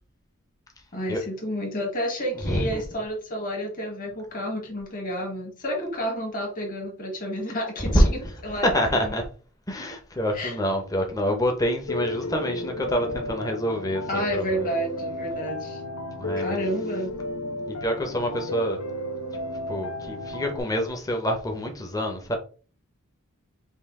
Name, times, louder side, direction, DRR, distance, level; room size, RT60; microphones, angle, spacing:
voice 1, 0.9-9.2 10.3-10.5 14.1-15.8 16.4-17.1, equal, 40° left, 1.6 m, -30 dB
voice 2, 2.4-2.8 7.8-8.1 8.6-9.2 9.7-14.6 16.2-16.6 17.8-18.8 19.7-22.3, equal, 15° left, 0.7 m, -26 dB
Piano, 11.9-20.6, left 1 dB, 75° left, 0.7 m, -33 dB
5.4 x 2.4 x 3.6 m
head